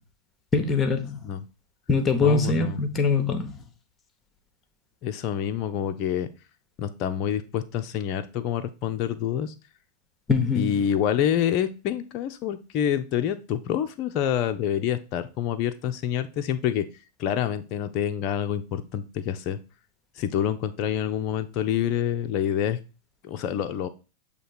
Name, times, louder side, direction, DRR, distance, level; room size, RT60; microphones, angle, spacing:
voice 1, 0.5-1.2 1.9-3.5 10.3-10.8, left 4 dB, 20° left, 1.0 m, -23 dB
voice 2, 2.2-2.8 5.0-6.3 6.8-9.5 10.5-16.9 17.2-19.6 20.2-22.8 23.2-23.9, left 9 dB, 40° left, 0.5 m, -27 dB
7.7 x 2.9 x 4.2 m
figure-of-eight pair, 90°, 0 cm